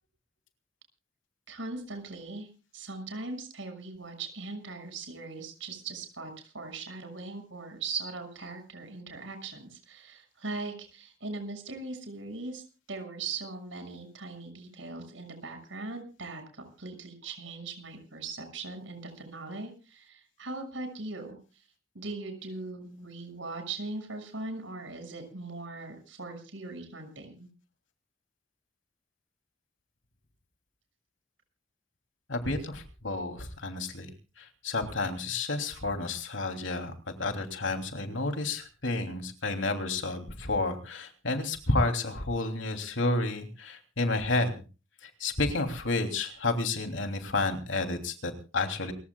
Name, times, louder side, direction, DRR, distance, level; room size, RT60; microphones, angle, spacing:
voice 1, 1.5-12.6 12.9-21.4 21.9-27.5, right 3 dB, 80° right, 6 dB, 6.3 m, -40 dB
voice 2, 32.3-34.1 34.4-36.9 37.2-44.6 45.0-48.9, left 2 dB, 80° left, 5 dB, 3.1 m, -30 dB
28.5 x 15.5 x 2.4 m, 0.34 s
head